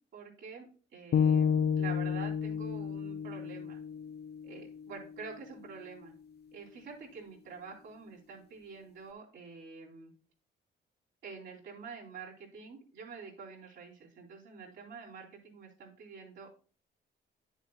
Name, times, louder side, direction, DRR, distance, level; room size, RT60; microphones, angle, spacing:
voice 1, 0.1-3.8 4.4-6.1 6.5-10.1 11.2-16.6, right 5 dB, 75° right, -2 dB, 3.1 m, -47 dB
sound 1, 1.1-5.3, left 7 dB, 55° left, 0.5 m, -31 dB
10.0 x 7.2 x 2.3 m, 0.38 s
cardioid pair, 90°, 20 cm